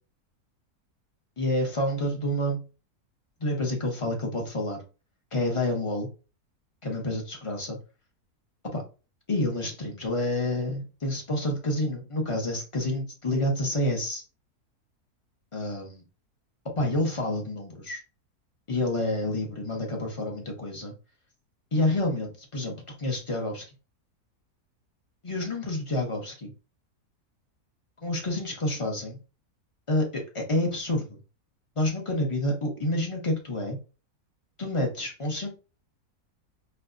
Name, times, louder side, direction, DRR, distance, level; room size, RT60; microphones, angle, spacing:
voice 1, 1.4-2.6 3.4-4.8 5.3-6.1 6.8-7.8 8.7-8.8 9.3-14.2 15.5-16.0 16.8-18.0 18.7-20.9 21.7-23.6 25.2-26.5 28.0-29.2 29.9-31.2 31.8-33.8 34.6-35.5, left 1 dB, 30° left, 0.6 m, -28 dB
4.3 x 2.7 x 2.6 m
omnidirectional pair, 1.7 m